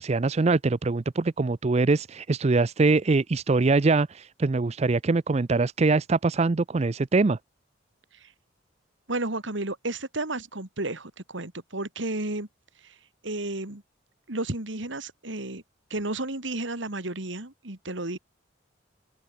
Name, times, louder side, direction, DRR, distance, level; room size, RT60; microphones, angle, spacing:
voice 1, 0.0-7.4, right 3 dB, 35° right, 0.5 m, -23 dB
voice 2, 9.1-12.5 12.8-12.9 13.2-13.8 14.3-15.6 15.9-18.2, right 2 dB, 70° right, 2.8 m, -32 dB
open air
head